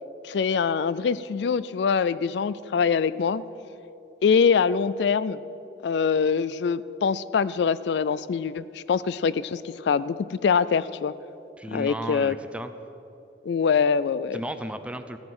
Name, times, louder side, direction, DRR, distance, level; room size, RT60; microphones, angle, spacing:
voice 1, 0.2-3.4 4.2-5.4 5.8-11.1 11.7-12.4 13.5-14.4, left 6 dB, 65° left, 17 dB, 0.3 m, -24 dB
voice 2, 11.6-12.7 14.3-15.2, right 1 dB, 5° right, 9 dB, 0.5 m, -34 dB
15.0 x 10.5 x 6.2 m, 2.9 s
head